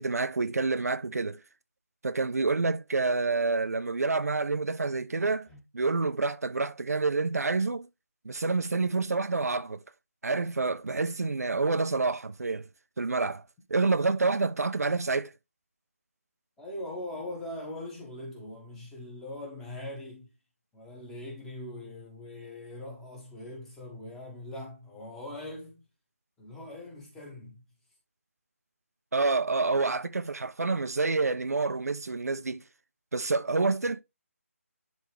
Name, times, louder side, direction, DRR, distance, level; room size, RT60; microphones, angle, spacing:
voice 1, 0.0-1.4 2.0-5.5 5.7-7.9 8.2-9.8 10.2-12.7 13.0-13.4 13.7-15.3 29.1-32.6 33.1-34.0, right 3 dB, 90° right, 0.7 m, -28 dB
voice 2, 16.6-20.3 20.7-25.9 26.4-27.6 33.4-33.7, left 1 dB, 5° left, 1.3 m, -41 dB
10.5 x 3.6 x 3.3 m
figure-of-eight pair, 170°, 8 cm